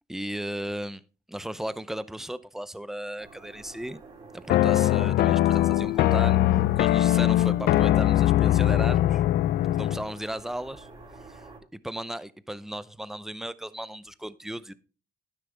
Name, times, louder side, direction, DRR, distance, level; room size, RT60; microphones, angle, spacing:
voice 1, 0.1-1.0 1.3-4.0 4.3-6.4 6.8-9.2 9.8-10.9 11.3-11.4 11.7-14.7, right 1 dB, ahead, 0.6 m, -35 dB
sound 1, 3.2-11.6, right 3 dB, 35° right, 4.6 m, -49 dB
sound 2, 4.5-10.1, left 14 dB, 65° left, 0.5 m, -21 dB
11.5 x 10.0 x 3.4 m
cardioid pair, 110°, 17 cm